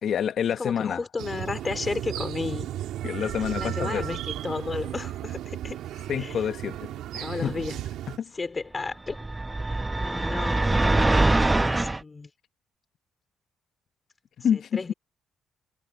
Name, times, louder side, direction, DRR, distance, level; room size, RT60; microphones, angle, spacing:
voice 1, 0.0-1.0 3.0-4.1 6.1-7.5 8.1-8.4 14.4-14.9, left 8 dB, 65° left, 1.0 m, -28 dB
voice 2, 0.6-2.7 3.2-5.8 6.2-6.4 7.2-7.8 8.3-9.3 9.6-12.3 14.7-14.9, left 4 dB, 30° left, 3.2 m, -33 dB
sound 1, 1.2-8.2, right 12 dB, 85° right, 2.4 m, -34 dB
sound 2, 9.1-12.0, right 2 dB, 15° right, 0.9 m, -23 dB
cardioid pair, 90°, 0 cm